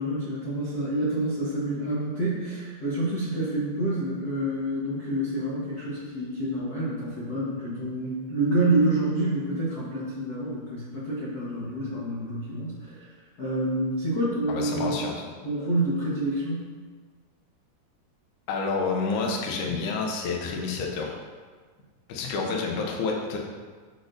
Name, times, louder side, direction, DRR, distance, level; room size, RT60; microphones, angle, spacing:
voice 1, 0.0-13.0 13.4-15.0 15.4-16.7, right 1 dB, 90° left, -9 dB, 0.8 m, -28 dB
voice 2, 14.5-15.3 18.5-21.2 22.1-23.4, left 4 dB, 75° left, 0 dB, 2.1 m, -29 dB
6.7 x 6.1 x 2.6 m, 1.5 s
omnidirectional pair, 3.8 m